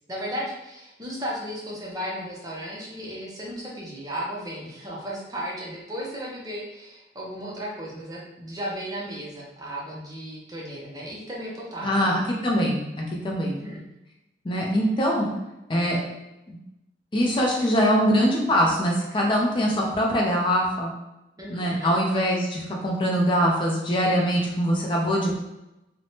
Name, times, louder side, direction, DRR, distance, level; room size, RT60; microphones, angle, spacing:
voice 1, 0.1-12.1 13.5-13.8 21.4-21.9, equal, 20° right, -4 dB, 0.6 m, -35 dB
voice 2, 11.8-13.6 14.4-15.3 15.7-16.0 16.5-16.6 17.1-20.9 21.5-25.3, equal, 25° left, -2 dB, 0.4 m, -23 dB
3.2 x 2.0 x 2.7 m, 0.94 s
head